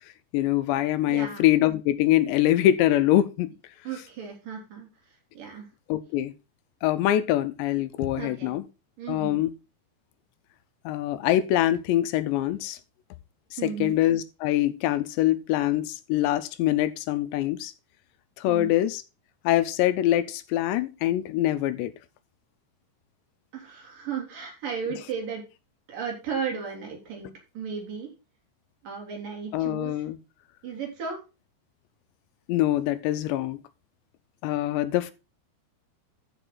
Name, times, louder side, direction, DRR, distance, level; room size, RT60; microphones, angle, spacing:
voice 1, 0.3-3.5 5.9-6.3 6.8-8.6 9.1-9.5 10.9-12.8 13.5-17.7 18.4-19.0 19.4-21.9 29.5-30.2 32.5-33.6 34.4-35.1, left 13 dB, 80° left, 2.8 m, -24 dB
voice 2, 1.1-1.4 3.8-4.9 5.3-5.7 8.2-8.5 9.0-9.4 13.6-14.0 18.5-18.7 23.5-25.4 25.9-28.1 28.8-30.0 30.6-31.2, right 6 dB, 50° right, 4.4 m, -35 dB
13.5 x 5.9 x 3.9 m
omnidirectional pair, 5.1 m